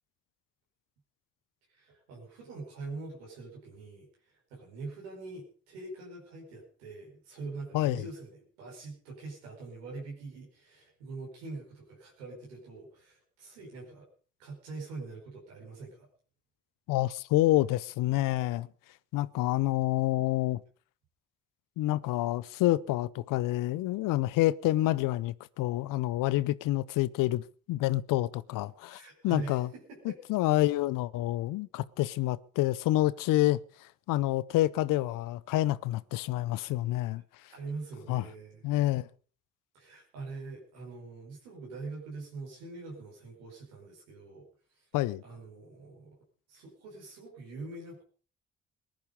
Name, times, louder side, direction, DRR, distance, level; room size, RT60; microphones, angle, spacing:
voice 1, 1.7-14.1 14.4-16.1 28.9-30.2 37.5-38.7 39.7-44.5 44.7-44.9 45.2-46.2 46.5-48.0, right 3 dB, 90° right, 5.1 m, -44 dB
voice 2, 7.7-8.1 16.9-18.7 19.1-20.6 21.8-29.7 30.0-37.5 38.1-38.2 38.6-39.1 44.9-45.2, left 16 dB, 75° left, 0.7 m, -28 dB
19.0 x 10.5 x 5.2 m
hypercardioid pair, 45°, 33 cm